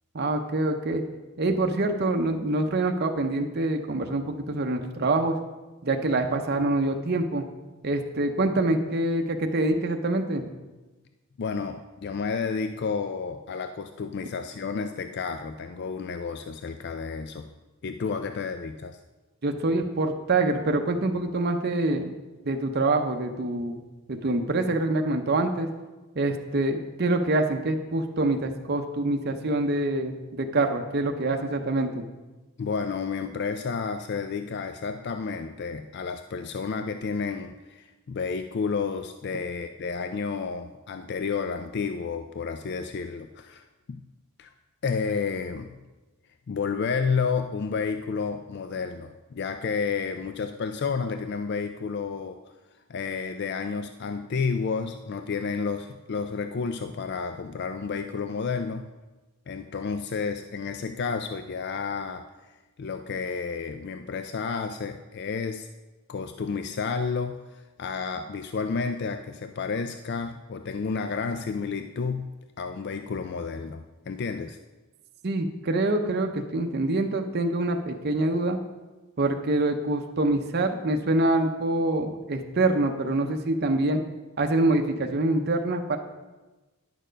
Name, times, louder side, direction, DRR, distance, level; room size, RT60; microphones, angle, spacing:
voice 1, 0.1-1.0 1.4-5.4 5.8-7.4 7.8-10.4 19.4-22.1 22.5-25.7 26.2-32.0 75.2-78.6 79.2-84.0 84.4-86.0, right 2 dB, 45° right, 5 dB, 0.6 m, -25 dB
voice 2, 11.4-17.5 17.8-19.0 32.6-44.0 44.4-44.5 44.8-45.8 46.5-52.4 52.9-58.9 59.5-62.3 62.8-65.7 66.1-72.3 72.6-74.6, left 5 dB, 50° left, 8 dB, 0.4 m, -31 dB
10.0 x 6.7 x 5.1 m, 1.2 s
head